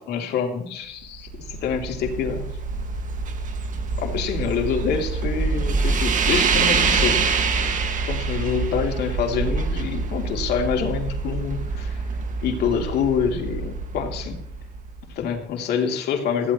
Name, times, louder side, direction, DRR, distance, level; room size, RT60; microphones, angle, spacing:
voice 1, 0.1-2.5 4.0-7.5 8.1-12.0 12.4-14.4 15.1-16.5, left 7 dB, 75° left, 3 dB, 3.3 m, -26 dB
sound 1, 1.0-15.2, right 4 dB, 50° right, 2.1 m, -25 dB
20.5 x 16.0 x 3.2 m, 0.69 s
cardioid pair, 110°, 17 cm